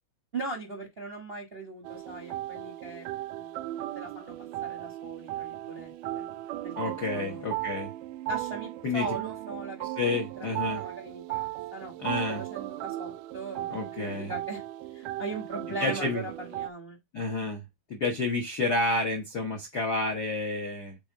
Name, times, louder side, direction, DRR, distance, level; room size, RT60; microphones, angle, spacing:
voice 1, 0.3-3.0 3.4-3.7 3.9-4.3 4.6-6.3 6.6-7.5 8.3-11.9 12.3-14.6 14.9-17.0, right 2 dB, 40° right, 0.8 m, -40 dB
sound 1, 1.8-16.7, right 15 dB, 90° right, 2.1 m, -36 dB
voice 2, 6.8-7.9 8.8-9.2 10.0-10.8 12.0-12.4 13.7-14.3 15.8-16.2 17.1-17.6 17.9-21.0, left 2 dB, 60° left, 1.0 m, -30 dB
6.2 x 4.5 x 3.7 m
omnidirectional pair, 3.6 m